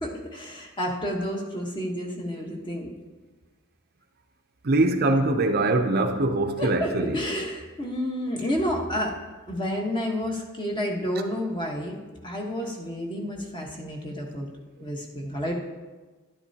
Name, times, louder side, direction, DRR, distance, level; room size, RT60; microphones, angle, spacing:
voice 1, 0.0-2.9 6.6-9.2 9.5-12.0 12.2-14.5 14.8-15.5, equal, 20° left, 1.3 m, -30 dB
voice 2, 4.6-7.2, right 2 dB, 45° right, 0.6 m, -23 dB
11.0 x 11.0 x 2.8 m
head